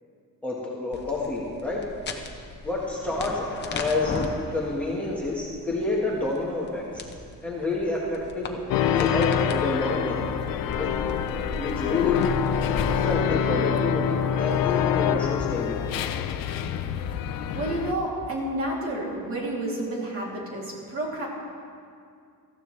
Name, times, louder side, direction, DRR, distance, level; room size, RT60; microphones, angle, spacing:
voice 1, 0.4-1.8 2.6-7.0 7.4-10.3 10.8-10.9 11.5-12.3 12.9-16.0, left 3 dB, 5° left, -5 dB, 1.4 m, -28 dB
sound 1, 0.9-12.8, left 4 dB, 30° left, 0.9 m, -38 dB
sound 2, 8.7-17.9, left 8 dB, 70° left, 0.7 m, -26 dB
voice 2, 17.5-21.3, right 1 dB, 40° right, -4 dB, 2.9 m, -30 dB
19.0 x 14.5 x 3.3 m, 2.3 s
cardioid pair, 175°, 35 cm